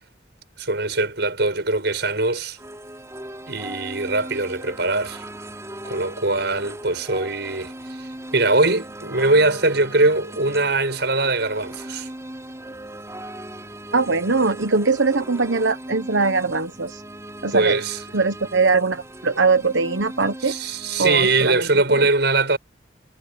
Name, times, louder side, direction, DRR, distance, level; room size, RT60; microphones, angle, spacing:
voice 1, 0.6-2.6 3.5-5.2 5.8-7.7 8.3-12.1 17.5-18.0 20.4-22.6, right 2 dB, 60° right, 7.8 m, -21 dB
sound 1, 1.7-21.5, right 1 dB, 15° right, 6.0 m, -38 dB
voice 2, 13.9-17.0 17.4-17.8 18.1-20.6 21.0-21.7 22.0-22.1, right 4 dB, 80° right, 1.2 m, -21 dB
head